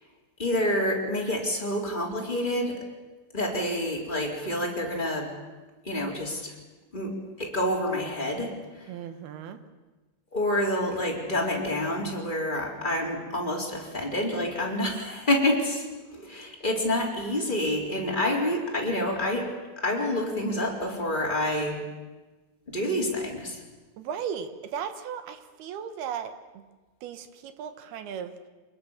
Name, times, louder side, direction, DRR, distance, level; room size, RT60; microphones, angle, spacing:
voice 1, 0.4-2.8 3.3-5.3 5.8-6.5 6.9-8.5 10.3-15.8 16.1-19.5 19.8-21.8 22.7-23.6, left 1 dB, 10° left, -2 dB, 3.4 m, -28 dB
voice 2, 8.9-9.6 24.0-26.6 27.0-28.3, right 8 dB, 70° right, 10 dB, 2.8 m, -36 dB
24.5 x 21.0 x 7.3 m, 1.2 s
omnidirectional pair, 5.3 m